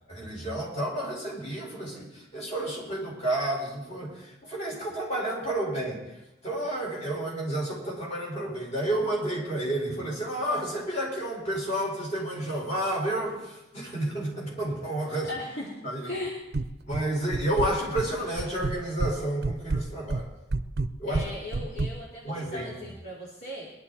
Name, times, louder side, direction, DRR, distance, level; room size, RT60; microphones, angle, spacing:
voice 1, 0.1-6.0 6.4-15.3 15.8-16.1 16.9-20.3 21.0-21.2 22.2-22.7, right 1 dB, 40° left, -3 dB, 4.9 m, -30 dB
voice 2, 15.2-16.4 21.1-23.7, left 1 dB, 60° left, -5 dB, 2.7 m, -38 dB
sound 1, 16.5-17.1 17.3-18.1 18.4-19.1 19.4-21.9, right 3 dB, 60° right, 0.6 m, -28 dB
21.5 x 11.5 x 4.2 m, 0.96 s
head